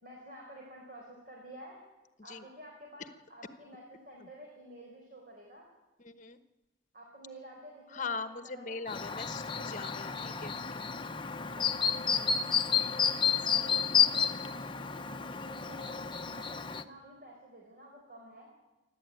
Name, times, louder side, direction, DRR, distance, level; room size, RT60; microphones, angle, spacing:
voice 1, 0.0-1.8 2.2-5.7 6.9-8.8 11.4-11.7 13.4-18.5, right 1 dB, 45° right, -1 dB, 4.5 m, -51 dB
voice 2, 6.0-6.4 7.9-10.9 12.1-12.4, left 4 dB, 40° left, 10 dB, 1.2 m, -41 dB
Chirp tweet, 8.9-16.8, left 7 dB, 25° left, 0.8 m, -31 dB
29.0 x 12.0 x 9.3 m, 1.1 s
head